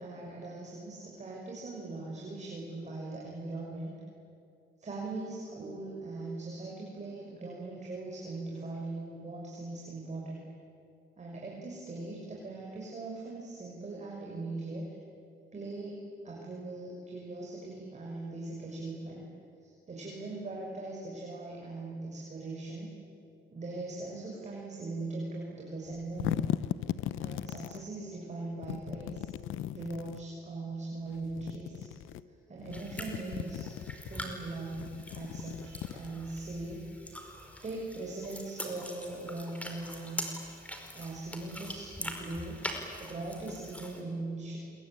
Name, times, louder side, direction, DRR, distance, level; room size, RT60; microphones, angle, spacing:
voice 1, 0.0-3.9 4.8-10.5 11.2-14.9 15.5-16.0 16.2-19.2 19.6-23.0 23.5-26.5 26.9-29.3 29.7-31.9 32.5-36.8 37.6-40.2 40.9-42.6 43.0-44.6, right 2 dB, 35° right, -2 dB, 6.4 m, -40 dB
sound 1, 25.9-27.8 28.6-30.2 31.2-32.2 32.6-34.1 34.7-36.5, left 13 dB, 85° left, 0.8 m, -37 dB
sound 2, 32.7-44.0, equal, 5° left, 5.0 m, -43 dB
27.0 x 23.5 x 9.1 m, 2.5 s
cardioid pair, 90°, 20 cm